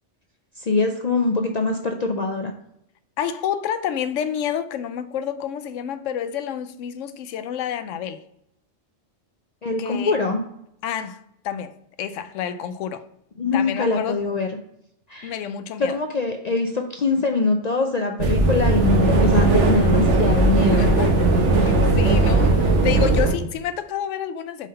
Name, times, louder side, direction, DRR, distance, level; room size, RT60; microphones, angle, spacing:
voice 1, 0.6-2.5 9.6-10.4 13.4-14.6 15.1-15.3 15.8-20.9, left 3 dB, 60° left, 0.4 m, -23 dB
voice 2, 3.2-8.2 9.8-10.2 10.8-13.0 13.5-14.2 15.2-16.0 20.7-24.7, left 9 dB, 80° left, 0.9 m, -29 dB
sound 1, 18.2-23.3, right 2 dB, 70° right, 1.2 m, -18 dB
4.9 x 3.8 x 5.2 m
omnidirectional pair, 1.3 m